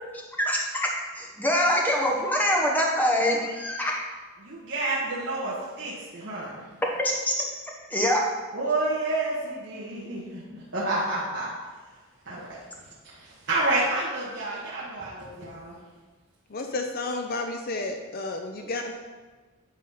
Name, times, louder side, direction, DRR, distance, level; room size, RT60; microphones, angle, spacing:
voice 1, 0.1-4.0 7.0-7.5 7.9-8.2, equal, 10° left, -1 dB, 1.0 m, -25 dB
voice 2, 4.4-6.7 8.5-11.5 12.2-12.6 13.0-15.8, right 2 dB, 50° right, -7 dB, 1.4 m, -29 dB
voice 3, 16.5-18.9, left 2 dB, 40° left, 4 dB, 0.5 m, -31 dB
9.7 x 4.0 x 5.6 m, 1.3 s
head